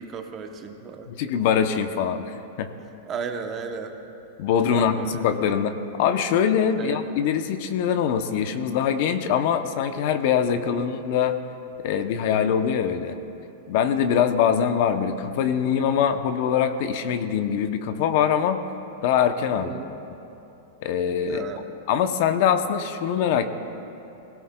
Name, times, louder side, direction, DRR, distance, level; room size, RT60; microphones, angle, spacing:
voice 1, 0.0-1.1 3.1-4.0 4.7-5.3 6.8-7.0 10.6-10.9 15.0-15.1 19.5-19.9 21.2-21.7, right 6 dB, 20° right, 6 dB, 0.7 m, -35 dB
voice 2, 1.1-2.7 4.4-5.0 5.2-11.4 11.8-13.2 13.7-18.6 19.0-19.7 20.8-21.4 21.9-23.5, left 8 dB, 45° left, 9 dB, 0.6 m, -23 dB
20.0 x 17.0 x 2.2 m, 2.9 s
supercardioid pair, 165°, 0 cm